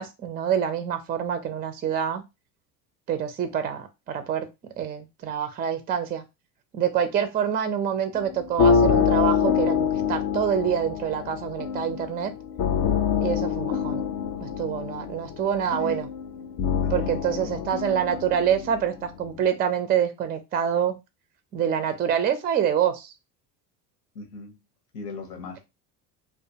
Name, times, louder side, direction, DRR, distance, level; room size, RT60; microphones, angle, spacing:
voice 1, 0.0-2.2 3.1-4.5 4.8-6.2 6.7-12.3 13.2-14.0 14.4-16.1 16.9-21.0 21.5-23.1, right 8 dB, 20° right, 0.4 m, -26 dB
sound 1, 8.1-19.3, left 7 dB, 50° left, 0.6 m, -26 dB
voice 2, 16.8-17.6 24.1-24.6 24.9-25.6, left 3 dB, 80° left, 0.9 m, -39 dB
2.2 x 2.2 x 2.7 m
hypercardioid pair, 75°, 48 cm